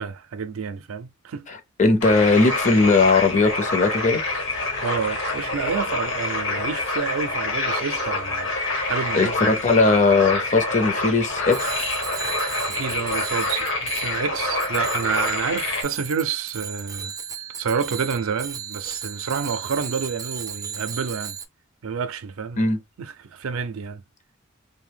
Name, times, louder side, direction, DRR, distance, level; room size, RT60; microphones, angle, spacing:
voice 1, 0.0-1.5 4.8-8.5 8.8-9.6 12.7-17.1 17.6-21.4 21.8-22.6 23.0-24.0, right 6 dB, 90° right, 0.4 m, -29 dB
voice 2, 1.5-4.2 9.1-11.8 22.6-22.8, left 3 dB, 40° left, 0.6 m, -19 dB
sound 1, 2.0-15.8, left 2 dB, 70° left, 1.0 m, -27 dB
sound 2, 4.0-4.4 4.9-6.2 6.5-7.1 7.5-7.8 8.1-8.9 9.2-9.5 9.8-11.8 12.2-12.7, left 7 dB, 85° left, 0.5 m, -37 dB
Bicycle bell, 11.5-21.5, right 7 dB, 15° right, 0.3 m, -35 dB
2.7 x 2.1 x 3.3 m
head